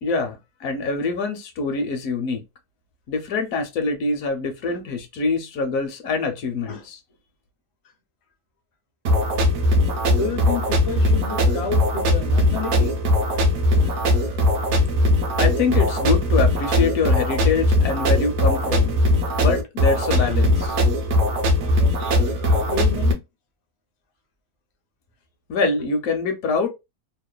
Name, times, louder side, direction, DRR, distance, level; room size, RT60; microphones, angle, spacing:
voice 1, 0.0-2.4 3.1-7.0 15.4-19.0 19.4-20.8 25.5-26.7, left 4 dB, 70° left, 1.0 m, -25 dB
sound 1, 9.0-23.1, left 1 dB, 65° right, 0.8 m, -20 dB
voice 2, 10.1-13.0 13.3-13.4 13.7-13.9 22.4-23.2 25.8-25.9, left 5 dB, 50° left, 0.4 m, -31 dB
2.9 x 2.1 x 2.2 m
omnidirectional pair, 1.6 m